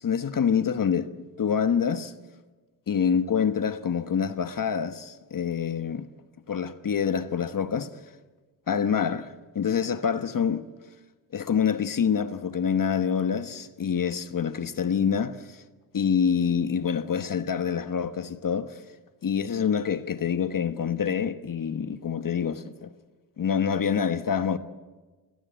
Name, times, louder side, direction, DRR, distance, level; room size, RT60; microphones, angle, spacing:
voice 1, 0.0-1.1 1.4-2.1 2.9-6.1 6.5-7.9 8.7-10.7 11.3-15.6 15.9-18.8 19.2-22.9 23.4-24.6, left 7 dB, 55° left, 1.2 m, -26 dB
30.0 x 17.5 x 9.1 m
wide cardioid pair, 100°, 40 cm